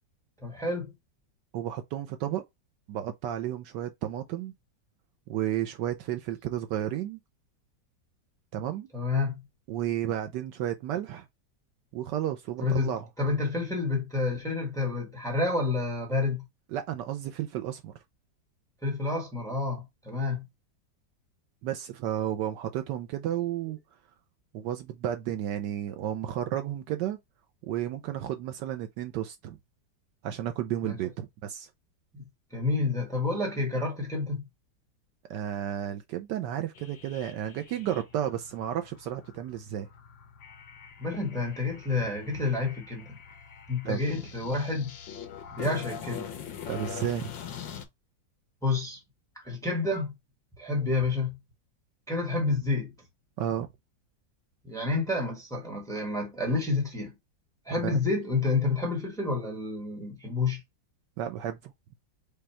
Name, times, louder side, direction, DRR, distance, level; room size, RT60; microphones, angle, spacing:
voice 1, 0.4-0.9 8.9-9.4 12.6-12.9 13.2-16.4 18.8-20.5 30.8-31.0 32.1-32.2 32.5-34.4 41.0-43.2 43.7-45.0 45.6-46.3 48.6-49.0 49.4-50.1 50.6-51.4 52.1-52.9 54.6-57.1 57.6-60.6, left 3 dB, ahead, 1.1 m, -29 dB
voice 2, 1.5-2.4 2.9-4.5 5.3-7.2 8.5-8.9 9.7-11.3 11.9-13.1 16.7-17.9 21.6-23.8 24.5-27.2 27.6-29.6 30.2-31.7 35.3-39.9 43.8-44.0 46.7-47.3 53.4-53.7 57.7-58.0 61.2-61.7, right 11 dB, 75° right, 1.1 m, -32 dB
sound 1, 36.7-47.8, left 8 dB, 80° left, 1.6 m, -43 dB
5.2 x 2.3 x 4.3 m
omnidirectional pair, 2.0 m